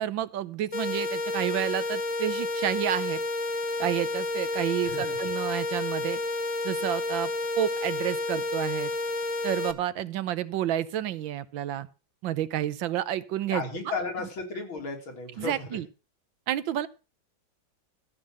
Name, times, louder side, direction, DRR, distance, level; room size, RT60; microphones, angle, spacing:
voice 1, 0.0-3.2 3.8-6.2 6.6-7.3 7.6-8.9 9.4-11.9 12.2-13.6 15.4-15.9 16.5-16.9, right 12 dB, 75° right, 15 dB, 1.5 m, -30 dB
sound 1, 0.7-9.7, left 2 dB, 45° left, 0.4 m, -30 dB
voice 2, 4.8-5.2 13.5-15.8, left 3 dB, 85° left, 3 dB, 3.7 m, -34 dB
14.0 x 5.7 x 7.5 m, 0.32 s
omnidirectional pair, 2.2 m